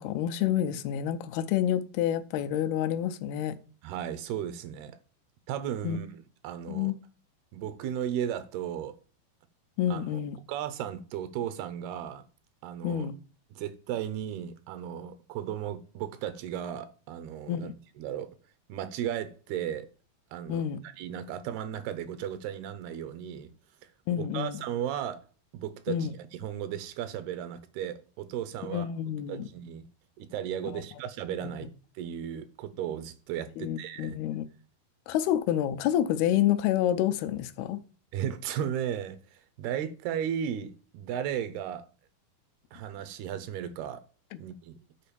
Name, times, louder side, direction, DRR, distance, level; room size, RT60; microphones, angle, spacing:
voice 1, 0.0-3.6 5.8-6.0 6.7-6.9 9.8-10.4 12.8-13.1 17.5-17.7 20.5-20.8 24.1-24.6 25.9-26.1 28.6-29.5 30.7-30.8 33.6-34.5 35.1-37.8, left 11 dB, 85° left, 2.6 m, -28 dB
voice 2, 3.8-5.0 5.5-6.1 6.4-6.9 7.5-9.0 9.9-10.2 10.5-12.2 12.6-13.1 13.5-17.7 18.0-18.3 18.7-19.9 20.3-23.5 24.2-25.2 25.5-26.1 26.4-28.9 29.3-29.9 30.2-31.7 32.0-34.2 38.1-41.9 42.7-44.0 44.4-44.8, right 9 dB, 85° right, 2.9 m, -35 dB
7.5 x 4.5 x 6.8 m
omnidirectional pair, 4.4 m